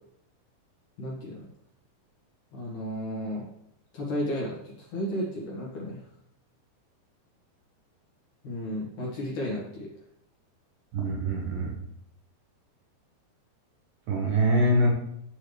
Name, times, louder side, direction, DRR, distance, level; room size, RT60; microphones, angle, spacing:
voice 1, 1.0-1.5 2.5-3.5 3.9-6.0 8.4-9.9, equal, 60° left, -4 dB, 2.7 m, -33 dB
voice 2, 10.9-11.8 14.1-14.9, right 1 dB, 70° right, -1 dB, 2.3 m, -24 dB
10.5 x 3.6 x 3.2 m, 0.75 s
omnidirectional pair, 4.6 m